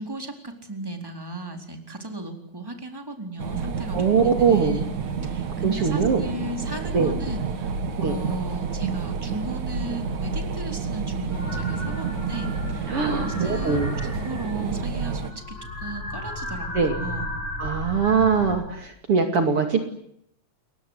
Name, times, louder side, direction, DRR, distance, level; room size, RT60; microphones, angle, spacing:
voice 1, 0.0-4.9 5.2-17.3, right 2 dB, 5° right, 4 dB, 3.8 m, -35 dB
sound 1, 3.4-15.3, right 5 dB, 85° right, 3.6 m, -30 dB
voice 2, 3.9-4.8 5.6-6.3 6.9-7.1 8.0-8.2 12.9-13.9 16.7-17.0 17.6-19.8, right 5 dB, 50° right, 5 dB, 3.3 m, -22 dB
sound 2, 11.3-18.6, left 1 dB, 90° left, 9.0 m, -34 dB
29.5 x 23.0 x 8.1 m, 0.73 s
omnidirectional pair, 3.3 m